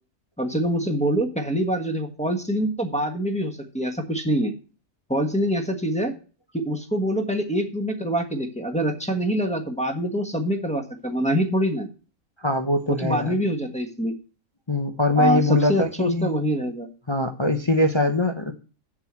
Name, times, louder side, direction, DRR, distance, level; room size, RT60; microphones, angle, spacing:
voice 1, 0.4-4.5 5.1-6.1 6.5-11.9 12.9-14.1 15.2-16.9, equal, 5° left, 2 dB, 1.2 m, -25 dB
voice 2, 12.4-13.4 14.7-16.3 17.1-18.5, left 1 dB, 25° left, 5 dB, 0.7 m, -22 dB
7.5 x 6.4 x 7.4 m, 0.37 s
omnidirectional pair, 1.4 m